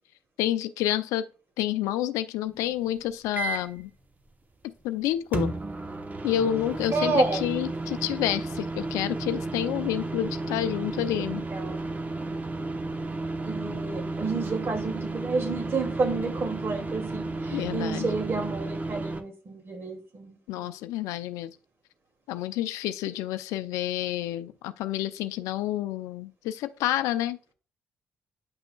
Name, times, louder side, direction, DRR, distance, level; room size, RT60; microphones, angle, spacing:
voice 1, 0.4-1.3 1.6-3.9 4.6-5.5 6.2-11.4 17.5-18.1 20.5-21.6 22.3-27.5, left 12 dB, 75° left, 0.5 m, -29 dB
sound 1, 3.3-3.8 5.3-19.2, right 2 dB, 30° right, 1.0 m, -33 dB
voice 2, 6.9-7.4 11.5-11.8 13.4-20.7, right 3 dB, 45° right, 2.4 m, -30 dB
9.7 x 5.8 x 2.3 m
hypercardioid pair, 45°, 6 cm